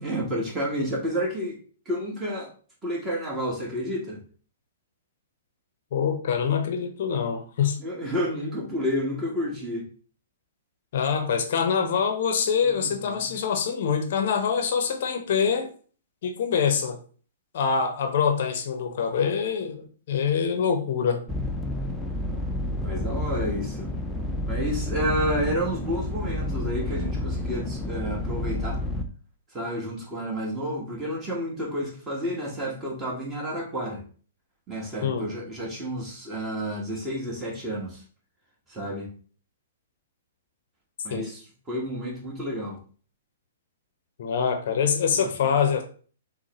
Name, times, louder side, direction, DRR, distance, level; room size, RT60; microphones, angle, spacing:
voice 1, 0.0-1.6 1.8-2.5 2.8-4.2 7.8-9.8 12.6-13.3 22.8-23.9 24.5-28.8 29.5-34.0 34.7-38.0 38.7-39.1 41.0-41.4 41.7-42.8 45.1-45.3, equal, 20° right, 1.3 m, -30 dB
voice 2, 5.9-7.8 10.9-15.7 16.2-17.0 17.5-21.2 35.0-35.2 41.1-41.3 44.2-45.8, left 6 dB, 50° left, 0.7 m, -25 dB
sound 1, 21.3-29.0, left 1 dB, ahead, 0.6 m, -30 dB
6.2 x 2.1 x 3.0 m
figure-of-eight pair, 115°, 0 cm